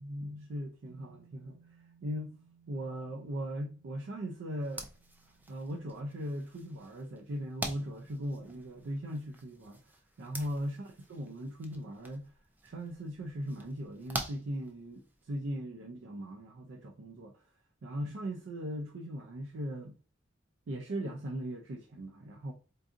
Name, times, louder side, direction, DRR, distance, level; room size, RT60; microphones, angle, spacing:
voice 1, 0.0-1.6 2.0-2.4 2.7-4.8 5.5-9.8 10.2-12.3 12.6-17.4 17.8-20.0 20.7-22.5, equal, 90° right, 0.4 m, -39 dB
sound 1, 0.9-9.3, right 6 dB, 40° right, 1.0 m, -65 dB
sound 2, 4.6-15.2, right 1 dB, 10° right, 0.3 m, -46 dB
3.9 x 2.4 x 2.5 m
head